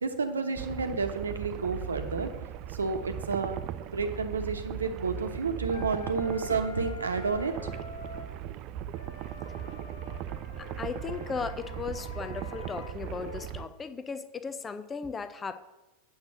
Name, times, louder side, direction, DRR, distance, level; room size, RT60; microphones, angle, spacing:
voice 1, 0.0-2.3 2.7-7.5, right 4 dB, 75° right, 6 dB, 1.0 m, -31 dB
sound 1, 0.6-13.7, right 11 dB, 40° right, 0.4 m, -38 dB
Wind instrument woodwind instrument, 5.7-8.3 8.9-13.5, left 5 dB, 50° left, 1.0 m, -46 dB
voice 2, 10.6-15.6, left 5 dB, 20° left, 12 dB, 0.6 m, -37 dB
8.9 x 6.1 x 5.9 m, 1.1 s
figure-of-eight pair, 90°, 0 cm